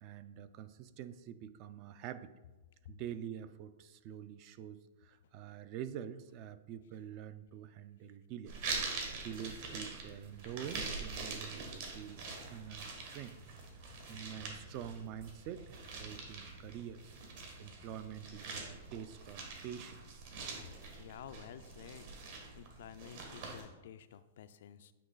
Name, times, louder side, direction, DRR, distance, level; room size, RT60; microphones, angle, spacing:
voice 1, 0.0-2.3 2.9-8.6 9.1-13.4 14.1-17.2 17.6-20.2, right 9 dB, 40° right, 13 dB, 0.3 m, -46 dB
sound 1, 8.5-23.6, right 4 dB, 55° right, 1.5 m, -44 dB
voice 2, 21.0-22.1 22.5-24.9, left 9 dB, 65° left, 12 dB, 0.3 m, -52 dB
8.4 x 3.1 x 3.9 m, 1.1 s
hypercardioid pair, 135°, 0 cm